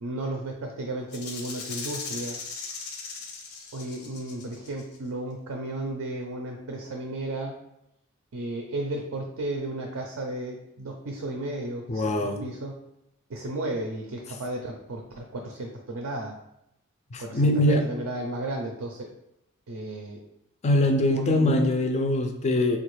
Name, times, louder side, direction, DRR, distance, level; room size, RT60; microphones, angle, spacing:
voice 1, 0.0-2.4 3.7-7.6 8.3-12.8 13.3-16.4 17.2-19.1 19.7-20.2 21.1-21.6, right 1 dB, 65° right, 1 dB, 0.4 m, -34 dB
Rattle (instrument), 1.1-5.0, left 4 dB, 75° left, 0.6 m, -38 dB
voice 2, 11.9-12.4 17.1-17.9 20.6-22.8, left 1 dB, 30° left, 5 dB, 0.3 m, -23 dB
3.4 x 2.3 x 3.1 m, 0.83 s
head